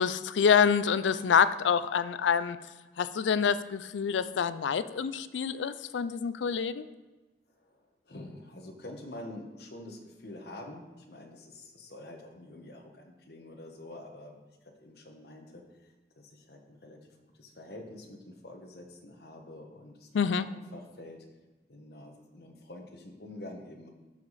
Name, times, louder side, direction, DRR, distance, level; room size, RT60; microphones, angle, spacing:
voice 1, 0.0-2.6 3.0-6.8 20.1-20.5, left 6 dB, 85° left, 14 dB, 0.4 m, -26 dB
voice 2, 7.5-15.9 16.2-21.3 21.7-23.9, left 1 dB, 60° left, 3 dB, 1.2 m, -47 dB
12.5 x 4.9 x 4.1 m, 1.2 s
head